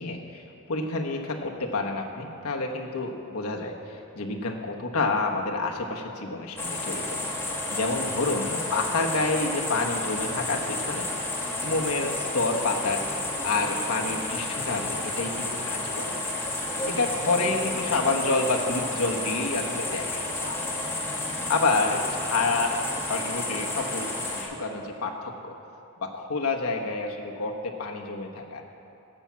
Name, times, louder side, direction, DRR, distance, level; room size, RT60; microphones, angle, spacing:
voice 1, 0.0-7.2 7.7-11.2 11.6-16.2 16.8-20.6 21.5-22.7 23.1-25.5 26.0-28.6, left 3 dB, 80° left, 1 dB, 1.1 m, -29 dB
sound 1, 6.6-24.4, left 2 dB, 10° left, 1.6 m, -31 dB
13.5 x 5.7 x 7.4 m, 2.7 s
head